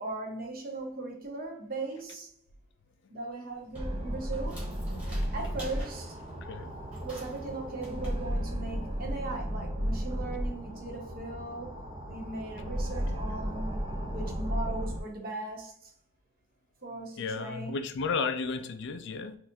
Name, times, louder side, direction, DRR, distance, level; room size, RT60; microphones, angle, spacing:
voice 1, 0.0-2.3 3.1-4.7 5.3-6.2 7.0-11.8 12.1-13.8 14.1-15.9 16.8-17.8, right 2 dB, 45° right, 0.9 m, -38 dB
sound 1, 3.5-9.2, equal, 5° right, 1.4 m, -52 dB
sound 2, 3.7-15.0, equal, 25° right, 0.6 m, -34 dB
voice 2, 6.4-6.8 13.1-13.2 17.2-19.4, left 4 dB, 60° left, 0.4 m, -33 dB
4.1 x 2.6 x 2.7 m
head